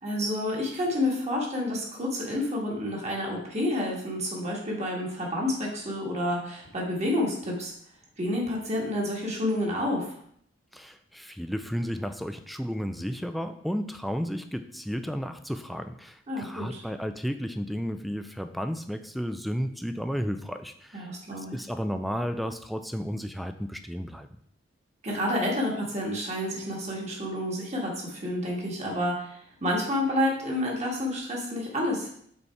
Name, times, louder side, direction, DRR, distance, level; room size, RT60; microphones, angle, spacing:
voice 1, 0.0-7.7 8.2-10.1 16.3-16.8 20.9-21.6 25.0-32.1, left 1 dB, 35° right, -2 dB, 1.7 m, -29 dB
voice 2, 10.7-21.1 21.4-24.3, equal, ahead, 8 dB, 0.3 m, -33 dB
5.5 x 4.2 x 4.6 m, 0.65 s
head